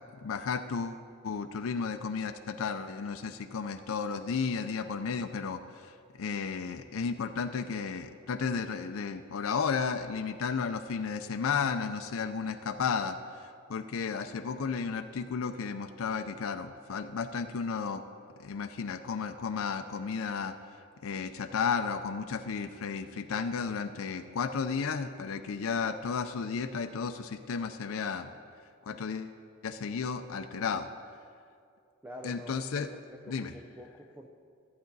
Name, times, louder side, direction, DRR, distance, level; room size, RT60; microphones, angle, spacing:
voice 1, 0.2-18.0 18.4-20.5 21.0-28.3 28.8-29.3 29.6-30.9 32.2-32.9 33.3-33.5, left 5 dB, 85° left, 8 dB, 0.5 m, -33 dB
voice 2, 32.0-34.3, left 1 dB, 10° right, 2 dB, 0.5 m, -47 dB
14.5 x 8.6 x 4.0 m, 2.3 s
head